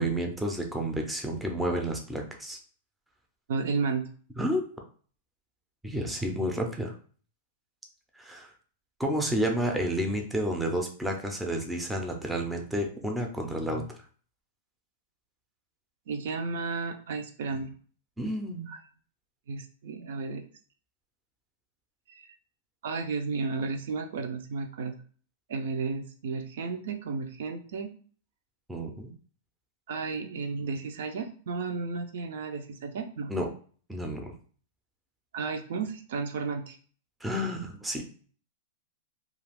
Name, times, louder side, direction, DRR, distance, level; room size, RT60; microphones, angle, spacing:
voice 1, 0.0-2.6 4.4-4.6 5.8-6.9 8.2-8.5 9.0-13.9 18.2-18.7 28.7-29.1 33.3-33.5 33.9-34.3 37.2-38.0, right 1 dB, 5° right, 2 dB, 0.5 m, -30 dB
voice 2, 3.5-4.0 16.1-17.7 18.7-18.8 19.5-20.4 22.1-22.3 22.8-24.9 25.5-27.9 29.9-33.3 35.3-36.8, right 4 dB, 70° right, 5 dB, 0.4 m, -33 dB
2.4 x 2.3 x 3.4 m, 0.43 s
hypercardioid pair, 145°, 0 cm